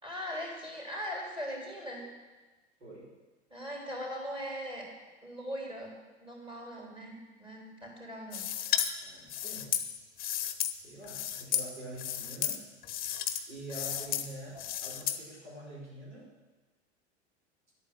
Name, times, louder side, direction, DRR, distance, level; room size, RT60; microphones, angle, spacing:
voice 1, 0.0-2.0 3.5-4.9 5.2-5.9 6.2-8.5 13.8-14.0, equal, 15° right, -2 dB, 3.9 m, -40 dB
sound 1, 8.3-8.9 9.3-10.7 11.0-11.7 12.0-12.6 12.8-13.4 13.7-14.3 14.6-15.2, left 10 dB, 25° left, 0.9 m, -33 dB
voice 2, 9.0-9.8 10.7-12.6 13.0-13.1 13.5-16.3, right 1 dB, 80° right, -4 dB, 4.9 m, -46 dB
11.0 x 8.7 x 7.1 m, 1.2 s
figure-of-eight pair, 85°, 34 cm